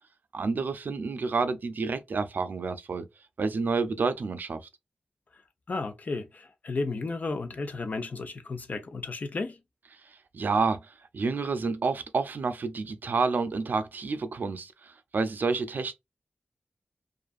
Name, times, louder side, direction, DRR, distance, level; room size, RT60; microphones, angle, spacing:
voice 1, 0.3-3.1 3.4-4.7 10.3-15.9, right 4 dB, 70° right, 0.4 m, -29 dB
voice 2, 5.7-9.6, left 3 dB, 55° left, 0.5 m, -33 dB
2.5 x 2.4 x 2.4 m
wide cardioid pair, 85°, 3 cm